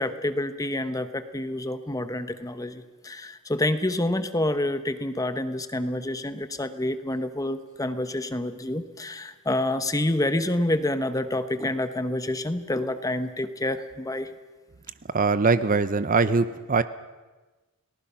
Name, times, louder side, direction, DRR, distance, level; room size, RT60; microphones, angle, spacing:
voice 1, 0.0-14.3, left 1 dB, 15° left, 10 dB, 1.1 m, -28 dB
voice 2, 15.0-16.8, right 4 dB, 40° right, 13 dB, 0.6 m, -22 dB
29.5 x 19.0 x 5.8 m, 1.2 s
head